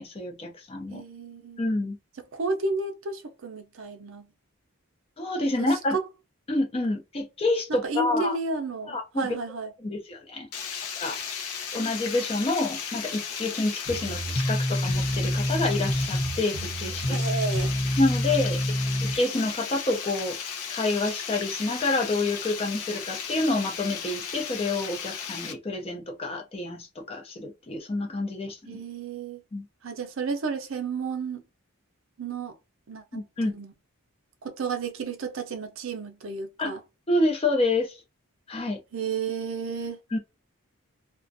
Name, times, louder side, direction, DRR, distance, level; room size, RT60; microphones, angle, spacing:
voice 1, 0.0-1.0 1.6-2.0 5.2-6.0 6.5-8.4 8.9-9.3 9.8-10.5 11.0-11.2 11.7-17.2 18.0-20.4 20.7-28.8 29.5-29.6 33.1-33.5 36.6-36.7 37.1-38.0 38.5-38.8 40.1-40.2, left 2 dB, 25° left, 0.5 m, -28 dB
voice 2, 0.9-1.6 2.3-4.3 5.6-6.0 7.8-9.7 17.1-17.7 28.7-29.4 29.8-31.4 32.2-32.5 32.9-33.2 33.5-33.7 34.4-36.8 38.9-40.0, right 4 dB, 65° right, 0.5 m, -32 dB
Water, 10.5-25.5, left 7 dB, 85° left, 0.6 m, -35 dB
sound 1, 13.8-19.2, equal, 55° left, 0.8 m, -27 dB
2.4 x 2.1 x 2.6 m
head